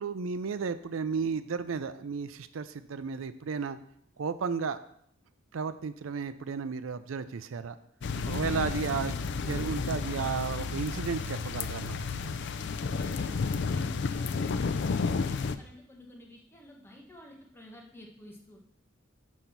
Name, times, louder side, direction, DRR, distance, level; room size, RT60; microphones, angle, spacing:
voice 1, 0.0-3.8 4.2-4.8 5.5-7.8 8.3-12.0, right 5 dB, 90° right, 13 dB, 0.5 m, -33 dB
sound 1, 8.0-15.5, left 4 dB, 60° left, 0.4 m, -32 dB
voice 2, 12.6-18.6, left 1 dB, 10° left, 0 dB, 1.3 m, -50 dB
6.3 x 5.2 x 5.7 m, 0.70 s
head